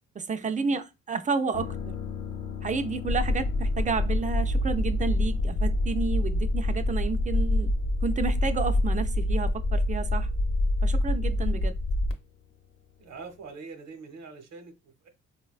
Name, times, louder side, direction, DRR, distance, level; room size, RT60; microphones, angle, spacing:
voice 1, 0.2-1.9 2.6-7.7 8.0-10.3 10.8-11.7, right 5 dB, 25° right, 0.3 m, -31 dB
sound 1, 1.5-13.1 13.4-13.5, left 8 dB, 80° left, 0.7 m, -42 dB
sound 2, 3.1-12.1, left 1 dB, 45° left, 0.6 m, -26 dB
voice 2, 13.0-15.1, right 4 dB, 65° right, 0.8 m, -44 dB
3.9 x 2.2 x 2.3 m
cardioid pair, 90°, 30 cm